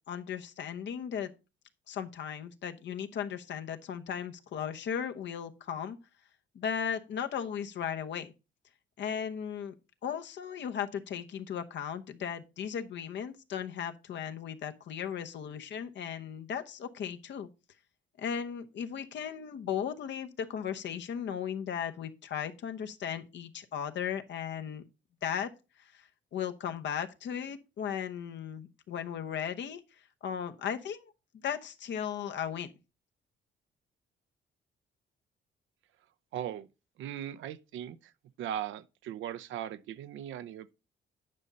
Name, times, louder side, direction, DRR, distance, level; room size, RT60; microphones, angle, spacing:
voice 1, 0.1-1.3 1.9-6.0 6.5-8.3 9.0-9.7 10.0-17.5 18.2-24.8 25.2-25.5 25.9-29.8 30.2-31.1 31.4-32.7, left 8 dB, 65° left, 0.9 m, -36 dB
voice 2, 36.3-36.7 37.0-38.1 38.4-40.7, right 10 dB, 80° right, 0.6 m, -38 dB
9.7 x 5.5 x 4.0 m
cardioid pair, 90°, 20 cm